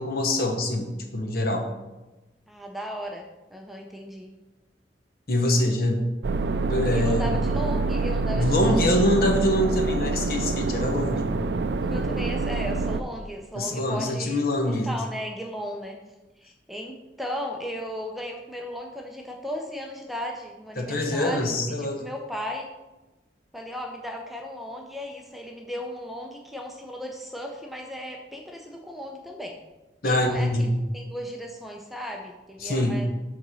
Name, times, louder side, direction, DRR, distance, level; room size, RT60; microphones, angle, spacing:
voice 1, 0.0-1.7 5.3-6.1 6.5-7.3 8.3-11.3 13.5-14.9 20.8-22.1 30.0-30.8 32.6-33.0, left 1 dB, 55° left, 3 dB, 1.1 m, -24 dB
voice 2, 2.5-4.3 6.9-8.9 11.8-16.0 16.4-22.7 23.5-29.6 30.0-30.5 30.9-33.1, equal, ahead, 1 dB, 0.6 m, -36 dB
sound 1, 6.2-13.0, right 3 dB, 70° right, 0.4 m, -26 dB
6.9 x 3.9 x 6.2 m, 1.1 s
head